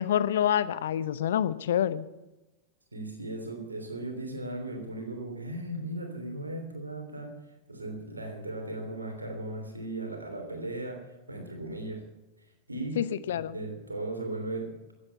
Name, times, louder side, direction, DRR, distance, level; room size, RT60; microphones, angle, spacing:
voice 1, 0.0-2.0 13.0-13.5, left 10 dB, 60° left, 16 dB, 0.7 m, -27 dB
voice 2, 2.9-7.3 7.7-12.0 12.7-14.8, right 2 dB, 80° right, 5 dB, 3.3 m, -37 dB
15.0 x 9.9 x 8.4 m, 1.0 s
figure-of-eight pair, 90°, 0 cm